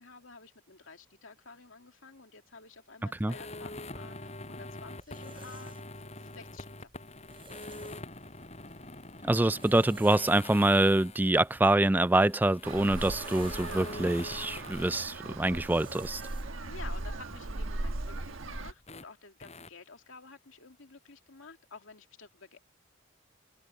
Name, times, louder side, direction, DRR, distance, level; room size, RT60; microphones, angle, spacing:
voice 1, 0.0-6.9 13.0-13.1 16.6-22.7, left 4 dB, 80° left, 2.4 m, -51 dB
sound 1, 3.3-15.0 18.9-19.0 19.4-19.7, left 2 dB, 35° left, 7.4 m, -44 dB
sound 2, 4.1-19.0, right 4 dB, 25° right, 5.3 m, -56 dB
voice 2, 9.2-16.2, right 1 dB, 10° right, 0.3 m, -25 dB
Traffic noise roadway noise, 12.6-18.7, right 2 dB, 85° right, 1.4 m, -38 dB
head